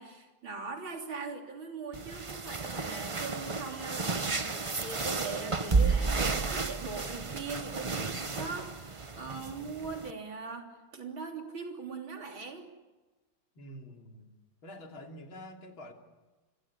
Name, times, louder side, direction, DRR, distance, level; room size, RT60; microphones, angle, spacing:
voice 1, 0.0-10.7 10.9-12.7, right 4 dB, 80° right, 3 dB, 4.2 m, -41 dB
sound 1, 1.9-10.1, right 4 dB, 40° right, 0.4 m, -32 dB
voice 2, 13.6-14.3 14.6-15.9, equal, 90° left, 3 dB, 3.7 m, -47 dB
28.0 x 22.0 x 8.5 m, 1.2 s
omnidirectional pair, 2.2 m